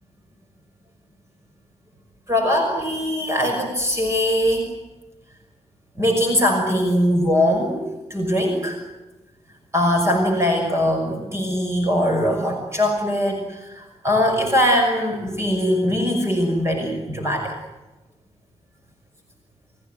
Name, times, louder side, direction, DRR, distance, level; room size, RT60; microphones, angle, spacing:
voice 1, 2.3-4.7 6.0-7.8 8.1-8.8 9.7-17.6, equal, 25° right, 2 dB, 6.0 m, -21 dB
29.5 x 17.0 x 9.4 m, 1.1 s
wide cardioid pair, 165°, 12 cm